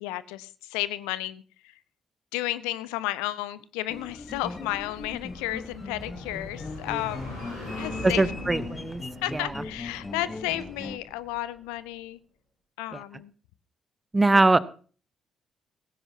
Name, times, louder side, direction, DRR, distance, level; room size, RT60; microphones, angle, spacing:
voice 1, 0.0-1.8 2.3-7.4 7.7-8.3 9.2-12.2 12.8-13.3 14.3-14.4, left 16 dB, 70° left, 18 dB, 0.5 m, -33 dB
sound 1, 3.9-11.0, left 3 dB, 25° left, 1.1 m, -39 dB
sound 2, 5.1-11.6, left 1 dB, 85° left, 6.1 m, -42 dB
voice 2, 8.0-9.0 9.3-9.5 14.1-14.6, right 2 dB, 20° right, 18 dB, 0.8 m, -21 dB
17.5 x 15.5 x 2.8 m, 0.40 s
figure-of-eight pair, 40°, 0 cm